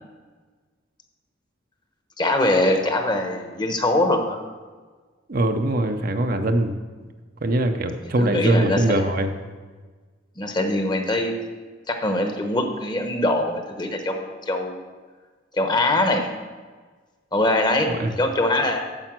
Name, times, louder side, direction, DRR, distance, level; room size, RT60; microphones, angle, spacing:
voice 1, 2.2-4.4 8.2-9.1 10.4-11.3 11.9-14.8 15.5-16.3 17.3-17.9 18.2-18.8, left 1 dB, 25° left, 5 dB, 1.0 m, -22 dB
voice 2, 5.3-6.8 7.4-9.3 18.0-18.2, right 1 dB, 50° right, 6 dB, 0.7 m, -22 dB
8.9 x 7.0 x 6.0 m, 1.4 s
head